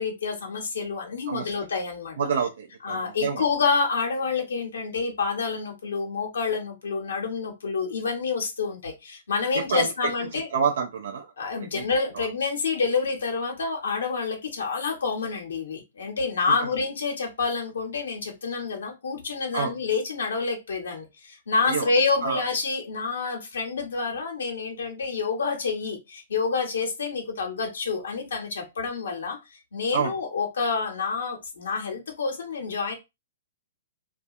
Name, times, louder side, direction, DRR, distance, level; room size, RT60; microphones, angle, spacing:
voice 1, 0.0-2.2 2.8-10.5 11.4-29.4 29.7-32.9, left 4 dB, 85° left, 0.7 m, -28 dB
voice 2, 2.2-3.4 9.7-9.9 10.5-11.3 11.6-11.8 12.1-12.3 19.5-19.7 21.7-21.9 22.2-22.4 29.9-30.1, right 6 dB, 80° right, 0.4 m, -27 dB
2.3 x 2.2 x 2.7 m
hypercardioid pair, 140°, 0 cm